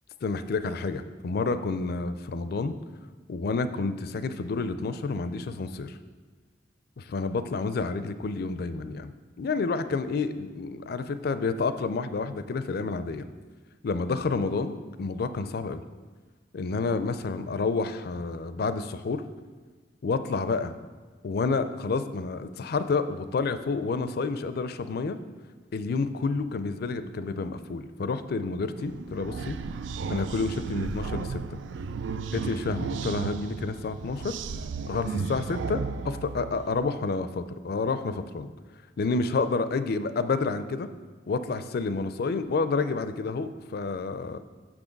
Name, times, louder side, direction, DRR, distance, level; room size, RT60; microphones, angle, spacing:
voice 1, 0.2-2.7 3.3-6.0 7.0-13.3 13.8-15.8 16.5-19.2 20.0-20.7 21.2-25.2 25.7-29.6 30.1-31.6 32.3-34.4 34.9-38.5 39.0-40.9 41.3-44.4, left 4 dB, 60° left, 11 dB, 0.4 m, -29 dB
sound 1, 28.8-36.8, right 4 dB, 85° right, 0.3 m, -34 dB
6.3 x 6.1 x 5.2 m, 1.4 s
head